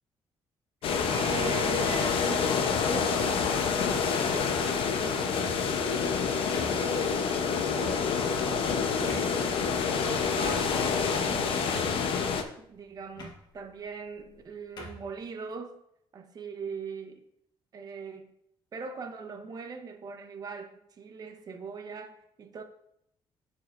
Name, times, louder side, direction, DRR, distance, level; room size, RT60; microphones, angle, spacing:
sound 1, 0.8-12.4, left 6 dB, 70° left, 0.8 m, -27 dB
voice 1, 1.1-3.8 4.1-9.4 9.7-10.8 11.0-12.2 12.6-15.8 16.1-17.3 17.7-18.3 18.7-20.7 21.0-22.6, right 5 dB, 40° right, 0.9 m, -41 dB
sound 2, 5.3-5.8 6.5-7.2 7.8-8.0 8.6-8.7 9.1-9.4 10.4-11.0 11.3-11.4 11.7-12.2 13.1-13.4 14.2-14.4 14.8-15.1, equal, 50° left, 1.7 m, -43 dB
13.0 x 4.8 x 2.5 m
cardioid pair, 140°, 10 cm